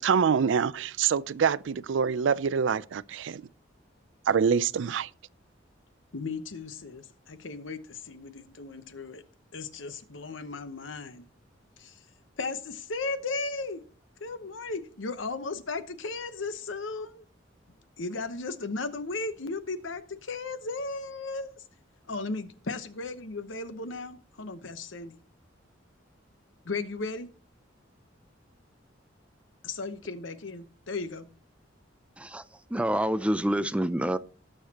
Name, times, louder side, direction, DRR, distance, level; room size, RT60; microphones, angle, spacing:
voice 1, 0.0-3.4 4.3-5.1, right 6 dB, 70° right, 0.4 m, -25 dB
voice 2, 6.1-9.2 9.5-11.2 11.8-12.0 12.4-13.8 14.2-17.2 18.0-21.6 22.1-25.2 26.6-27.3 29.6-31.3, left 3 dB, 85° left, 1.0 m, -36 dB
voice 3, 32.7-34.2, right 1 dB, 5° right, 0.4 m, -27 dB
19.0 x 6.5 x 2.9 m
head